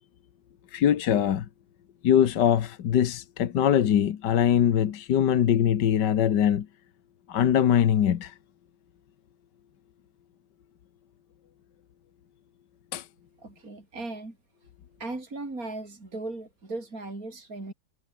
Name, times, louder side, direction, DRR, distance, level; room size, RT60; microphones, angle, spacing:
voice 1, 0.7-1.5 2.0-6.7 7.3-8.3 12.9-13.1, left 9 dB, 75° left, 1.8 m, -22 dB
voice 2, 13.4-14.4 15.0-17.7, right 2 dB, 50° right, 5.3 m, -37 dB
omnidirectional pair, 1.9 m